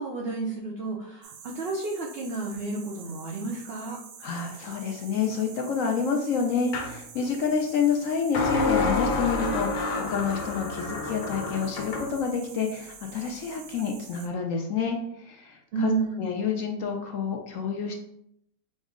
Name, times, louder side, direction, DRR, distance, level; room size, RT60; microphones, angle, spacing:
voice 1, 0.0-4.0 15.7-16.2, right 3 dB, 90° right, -1 dB, 0.5 m, -31 dB
sound 1, 1.2-14.3, right 6 dB, 70° right, 0.9 m, -47 dB
voice 2, 4.2-15.9 16.2-17.9, left 6 dB, 70° left, 2 dB, 0.8 m, -28 dB
sound 2, 6.7-6.9 8.3-12.1, left 3 dB, 85° left, 1.4 m, -28 dB
5.1 x 2.0 x 3.6 m, 0.74 s
omnidirectional pair, 1.7 m